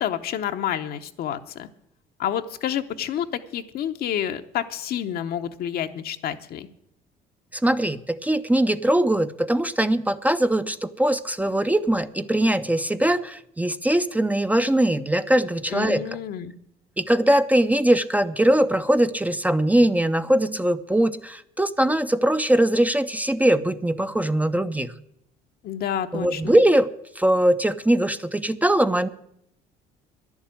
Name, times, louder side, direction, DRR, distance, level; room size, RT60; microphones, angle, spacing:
voice 1, 0.0-1.7 2.2-3.3 3.5-6.7 15.7-16.5 25.6-26.5, left 10 dB, 65° left, 8 dB, 0.9 m, -29 dB
voice 2, 7.5-16.1 17.0-24.9 26.1-26.9 27.2-29.1, right 1 dB, 10° right, 10 dB, 0.5 m, -21 dB
10.5 x 7.2 x 9.3 m, 0.73 s
cardioid pair, 95°, 17 cm